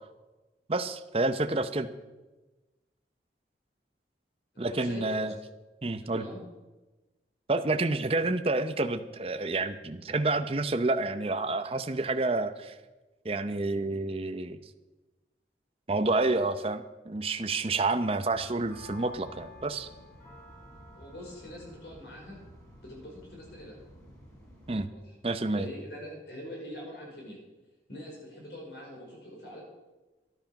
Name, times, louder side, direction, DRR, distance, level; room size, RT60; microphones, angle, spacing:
voice 1, 0.7-1.9 4.6-5.3 5.8-6.2 7.5-12.7 13.2-14.6 15.9-19.9 24.7-24.9 25.2-25.7, right 2 dB, 35° right, 9 dB, 0.7 m, -29 dB
voice 2, 4.5-5.4 6.0-6.4 20.9-22.4 22.8-23.8 24.9-25.1 25.5-27.4 27.9-29.6, equal, 70° left, -1 dB, 4.9 m, -43 dB
sound 1, 18.3-24.9, left 1 dB, 20° left, 4.1 m, -51 dB
13.0 x 11.5 x 5.9 m, 1.1 s
head